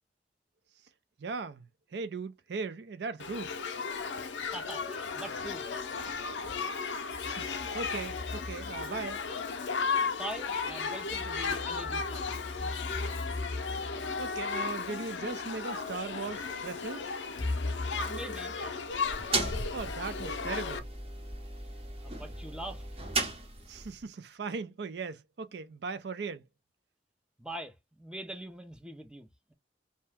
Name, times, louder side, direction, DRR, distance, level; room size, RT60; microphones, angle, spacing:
voice 1, 1.2-1.7 1.9-3.6 6.8-6.9 7.2-9.2 14.2-17.1 19.7-20.9 23.7-26.4, right 4 dB, 65° right, 0.4 m, -38 dB
Shout / Human group actions, 3.2-20.8, left 5 dB, 90° left, 0.5 m, -35 dB
voice 2, 4.4-5.7 10.2-12.7 18.0-18.6 21.9-22.8 27.4-29.5, right 1 dB, 5° right, 0.5 m, -43 dB
sound 1, 5.6-6.6 7.1-9.5 10.7-15.1 15.9-16.0 17.4-19.3, left 2 dB, 25° left, 0.8 m, -40 dB
sound 2, 18.9-24.0, right 2 dB, 35° right, 0.9 m, -36 dB
2.8 x 2.2 x 3.3 m
head